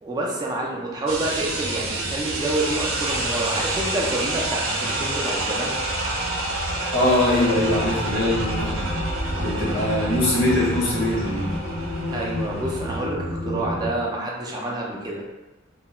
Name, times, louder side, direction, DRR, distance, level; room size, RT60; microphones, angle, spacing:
voice 1, 0.0-5.8 12.1-15.2, right 1 dB, 20° right, -3 dB, 0.3 m, -28 dB
sound 1, 1.1-13.1, right 2 dB, 75° right, 0.5 m, -28 dB
voice 2, 6.9-8.9 9.3-11.5, left 1 dB, 70° left, -6 dB, 1.0 m, -22 dB
sound 2, 7.5-13.9, left 1 dB, 55° left, 0.6 m, -31 dB
2.2 x 2.1 x 2.9 m, 1.1 s
head